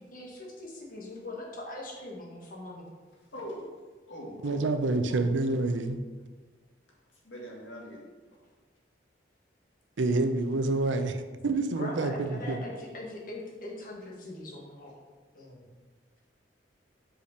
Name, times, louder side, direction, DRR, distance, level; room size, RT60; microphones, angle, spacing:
voice 1, 0.1-2.9 11.8-14.9 15.3-15.6, left 1 dB, 45° left, -2 dB, 1.5 m, -41 dB
voice 2, 3.2-5.6 6.9-8.4, equal, 85° left, -2 dB, 1.8 m, -43 dB
voice 3, 4.4-6.0 10.0-12.6, right 2 dB, 85° right, 8 dB, 0.6 m, -28 dB
5.2 x 5.0 x 5.0 m, 1.4 s
head